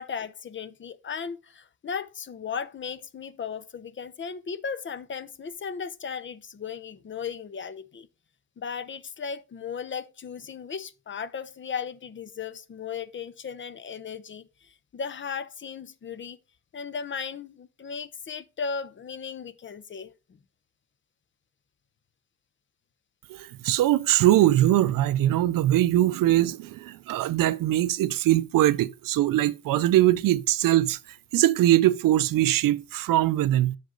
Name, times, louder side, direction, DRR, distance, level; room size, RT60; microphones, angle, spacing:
voice 1, 0.0-8.1 8.6-16.4 16.7-20.4, left 6 dB, 35° left, 0.5 m, -36 dB
voice 2, 23.3-31.0 31.3-33.8, right 14 dB, 75° right, 0.5 m, -22 dB
7.5 x 5.2 x 3.8 m
cardioid pair, 110°, 33 cm